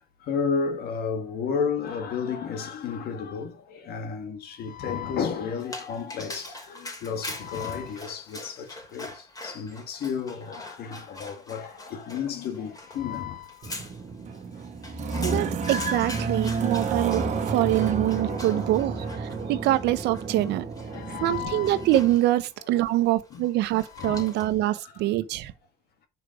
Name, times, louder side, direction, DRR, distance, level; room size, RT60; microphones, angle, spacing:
voice 1, 0.3-9.1 9.4-13.8 15.6-16.2 18.1-19.6 20.4-20.5 20.9-21.9 23.3-23.5 23.9-24.4 25.0-25.1, left 6 dB, 65° left, 1.9 m, -33 dB
Dog, 5.6-24.7, left 2 dB, 20° left, 2.8 m, -43 dB
sound 1, 13.6-22.2, right 5 dB, 45° right, 1.4 m, -31 dB
voice 2, 15.2-20.6 21.2-25.5, right 15 dB, 85° right, 0.9 m, -25 dB
6.5 x 4.8 x 5.1 m
cardioid pair, 110°, 17 cm